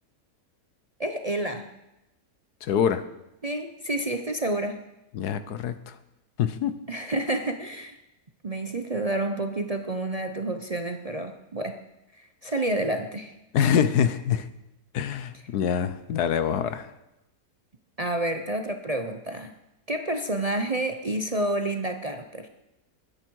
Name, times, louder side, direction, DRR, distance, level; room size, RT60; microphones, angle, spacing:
voice 1, 1.0-1.7 3.4-4.8 6.9-8.0 8.4-11.8 12.2-13.3 18.0-19.5 19.9-22.5, right 1 dB, 35° right, 5 dB, 0.6 m, -29 dB
voice 2, 2.6-3.0 5.1-5.9 6.4-6.8 13.5-14.5 14.9-16.9, left 8 dB, 85° left, 12 dB, 1.4 m, -25 dB
21.5 x 9.9 x 4.7 m, 0.93 s
omnidirectional pair, 1.6 m